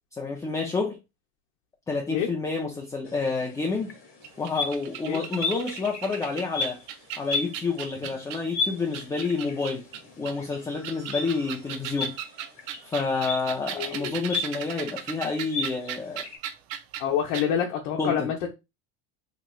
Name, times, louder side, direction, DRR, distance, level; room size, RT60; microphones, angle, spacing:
voice 1, 0.1-1.0 1.9-3.9 4.4-6.8 7.2-9.8 10.2-12.2 12.8-16.3 18.0-18.3, left 4 dB, 10° left, 0.3 m, -29 dB
sound 1, 3.0-16.4, left 4 dB, 35° left, 1.1 m, -36 dB
sound 2, 4.2-8.5 8.9-10.3 10.8-17.1 17.3-17.5, right 10 dB, 80° right, 0.5 m, -37 dB
voice 2, 13.8-14.1 17.0-18.5, left 8 dB, 80° left, 0.7 m, -27 dB
3.0 x 3.0 x 2.2 m
supercardioid pair, 115°, 36 cm